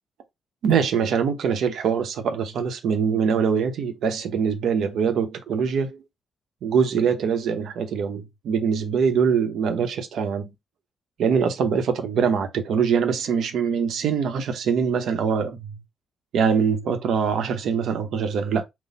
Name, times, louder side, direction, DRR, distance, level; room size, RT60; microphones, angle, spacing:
voice 1, 0.6-6.0 6.6-10.5 11.2-15.8 16.3-18.6, right 6 dB, 70° right, 0.9 m, -23 dB
4.1 x 2.2 x 4.1 m
cardioid pair, 90°, 0 cm